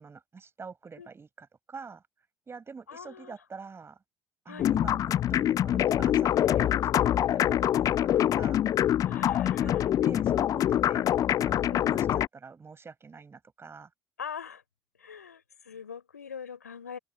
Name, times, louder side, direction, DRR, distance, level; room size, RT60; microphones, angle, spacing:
voice 1, 0.0-2.0 2.5-4.0 4.4-8.6 9.2-9.7 10.0-11.1 11.5-11.6 11.9-13.9, right 5 dB, 30° right, 7.5 m, -46 dB
voice 2, 2.9-3.4 4.5-4.7 9.0-9.8 11.7-11.9 14.2-14.6 15.0-17.0, left 7 dB, 80° left, 3.8 m, -43 dB
sound 1, 4.6-12.3, left 11 dB, 40° left, 0.5 m, -25 dB
open air
figure-of-eight pair, 50°, 9 cm